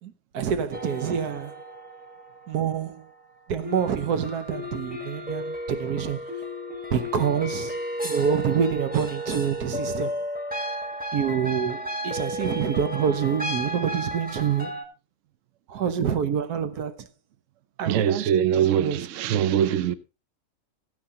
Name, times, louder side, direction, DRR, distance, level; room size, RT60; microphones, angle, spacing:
voice 1, 0.0-1.6 2.5-3.1 3.5-6.2 6.9-10.1 11.1-14.8 15.7-17.1 17.8-18.3 18.7-19.0, right 7 dB, 90° right, 1.4 m, -27 dB
sound 1, 0.7-3.1 3.6-14.8, equal, 5° right, 1.0 m, -33 dB
voice 2, 17.8-19.9, right 9 dB, 60° right, 1.0 m, -22 dB
15.0 x 9.5 x 2.8 m
omnidirectional pair, 1.6 m